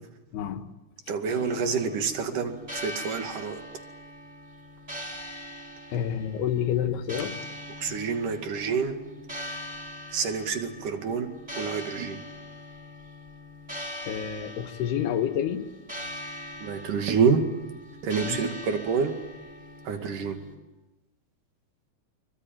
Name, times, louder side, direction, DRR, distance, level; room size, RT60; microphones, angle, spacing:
voice 1, 0.3-0.7 5.9-7.4 7.9-8.0 14.1-15.7 18.2-18.5, left 9 dB, 90° left, 8 dB, 3.5 m, -29 dB
voice 2, 1.1-3.6 7.8-8.9 10.1-11.3 11.6-12.2 16.6-17.4 18.0-19.1 19.9-20.4, right 6 dB, 55° right, 6 dB, 3.5 m, -27 dB
sound 1, 1.2-20.5, left 1 dB, 10° right, 4.8 m, -41 dB
25.0 x 24.0 x 9.1 m, 1.1 s
omnidirectional pair, 4.5 m